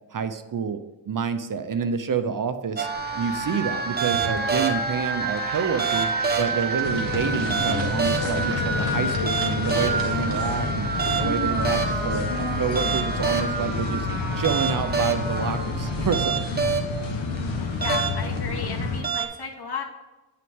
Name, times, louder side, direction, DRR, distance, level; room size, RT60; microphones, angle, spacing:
voice 1, 0.1-0.8 1.1-2.9 3.2-6.1 6.4-10.9 11.2-14.1 14.3-16.4, right 6 dB, 45° right, 10 dB, 0.7 m, -28 dB
sound 1, 2.8-19.3, right 4 dB, 20° right, 1.0 m, -27 dB
sound 2, 2.9-10.7, right 4 dB, 70° right, 2.0 m, -39 dB
sound 3, 6.8-19.0, left 4 dB, 80° left, 1.0 m, -29 dB
voice 2, 17.8-19.8, left 6 dB, 60° left, 0 dB, 2.0 m, -33 dB
9.3 x 5.7 x 3.6 m, 1.1 s
cardioid pair, 95°, 45 cm